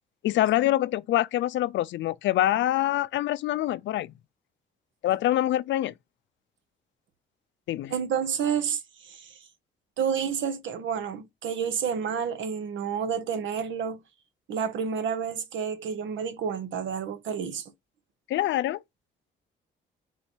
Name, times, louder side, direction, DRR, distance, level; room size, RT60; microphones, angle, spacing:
voice 1, 0.2-4.1 5.0-5.9 7.7-7.9 18.3-18.8, left 14 dB, 70° left, 0.4 m, -25 dB
voice 2, 7.9-9.3 10.0-14.0 14.5-17.7, right 7 dB, 70° right, 1.0 m, -30 dB
4.1 x 2.8 x 4.4 m
cardioid pair, 90°, 20 cm